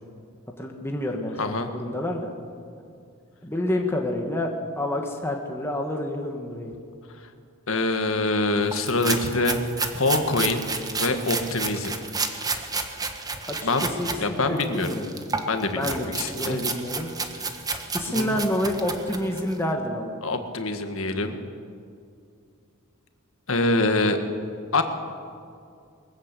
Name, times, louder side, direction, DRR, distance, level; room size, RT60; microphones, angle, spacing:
voice 1, 0.6-2.3 3.4-4.5 4.8-6.8 13.5-13.7 14.0-15.0 15.7-16.1 16.4-17.1 17.9-20.2, left 1 dB, 10° left, 1 dB, 1.6 m, -28 dB
voice 2, 1.4-1.7 7.2-7.3 7.7-9.6 9.9-10.6 11.0-12.0 13.6-13.9 14.2-15.0 15.5-16.6 18.0-18.4 20.2-21.4 23.5-24.2 24.7-24.8, left 2 dB, 75° left, 7 dB, 1.7 m, -25 dB
sound 1, 8.7-14.2 14.6-19.5, right 4 dB, 20° right, 1.4 m, -31 dB
22.0 x 14.5 x 8.4 m, 2.4 s
head